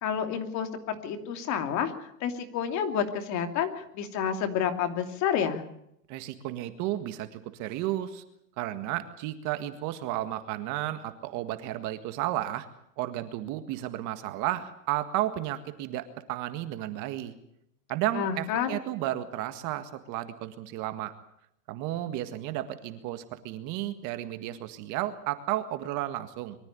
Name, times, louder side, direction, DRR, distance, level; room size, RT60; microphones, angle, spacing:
voice 1, 0.0-5.6 18.1-18.8, left 8 dB, 35° left, 6 dB, 2.8 m, -29 dB
voice 2, 6.1-8.2 8.6-12.7 13.0-17.3 17.9-21.1 21.7-26.6, right 14 dB, 40° right, 10 dB, 1.8 m, -33 dB
23.5 x 13.5 x 9.8 m, 0.77 s
supercardioid pair, 150°, 47 cm